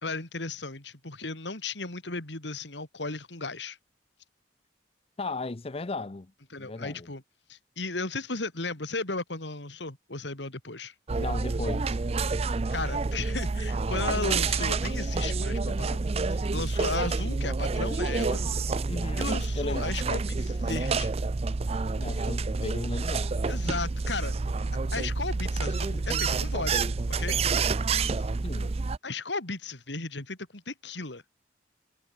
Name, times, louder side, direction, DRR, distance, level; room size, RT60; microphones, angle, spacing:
voice 1, 0.0-3.8 6.5-7.2 7.5-10.9 12.7-16.0 16.3-18.4 19.2-21.2 23.5-24.3 24.9-26.8 27.1-27.4 29.0-31.2, left 3 dB, 75° left, 3.3 m, -35 dB
voice 2, 5.2-6.3 6.6-7.1 11.2-12.0 18.9-20.0 22.0-23.3 28.2-28.7, left 3 dB, 30° left, 0.6 m, -36 dB
sound 1, 11.1-29.0, right 4 dB, 35° right, 0.5 m, -28 dB
head